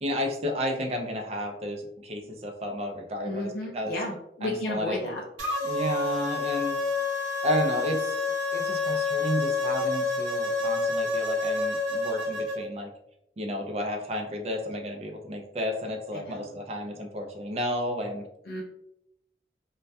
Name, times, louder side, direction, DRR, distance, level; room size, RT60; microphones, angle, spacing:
voice 1, 0.0-3.9 4.4-5.1 5.6-6.8 7.4-8.2 8.5-12.9 13.4-18.3, equal, 35° right, 3 dB, 0.4 m, -32 dB
voice 2, 3.2-5.2 16.1-16.5 18.5-18.6, left 1 dB, 55° left, -2 dB, 0.4 m, -33 dB
sound 1, 5.4-12.6, left 3 dB, 85° right, 0.6 m, -28 dB
2.2 x 2.2 x 2.6 m, 0.79 s
head